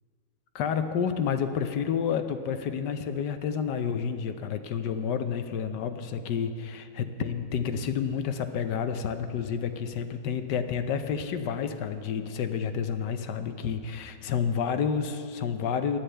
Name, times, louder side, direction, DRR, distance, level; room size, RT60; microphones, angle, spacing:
voice 1, 0.5-16.0, left 7 dB, 70° left, 9 dB, 1.3 m, -30 dB
18.5 x 12.5 x 3.4 m, 2.3 s
omnidirectional pair, 1.9 m